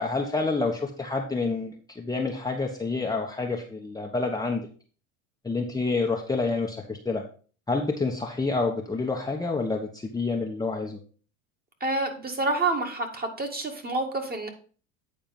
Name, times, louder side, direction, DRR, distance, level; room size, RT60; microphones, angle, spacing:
voice 1, 0.0-4.7 5.4-7.2 7.7-11.0, left 3 dB, 10° left, 0 dB, 1.0 m, -28 dB
voice 2, 11.8-14.5, right 2 dB, 25° right, 4 dB, 1.9 m, -28 dB
9.2 x 4.3 x 5.3 m, 0.40 s
hypercardioid pair, 90°, 40 cm